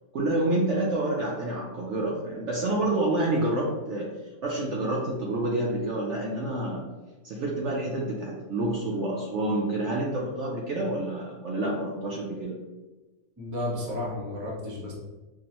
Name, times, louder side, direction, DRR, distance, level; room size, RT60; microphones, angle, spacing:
voice 1, 0.1-4.1 4.4-6.8 7.2-12.6, right 1 dB, 65° right, -3 dB, 0.8 m, -28 dB
voice 2, 13.4-14.9, left 1 dB, 15° right, -4 dB, 0.6 m, -32 dB
5.2 x 2.0 x 2.9 m, 1.2 s
omnidirectional pair, 1.6 m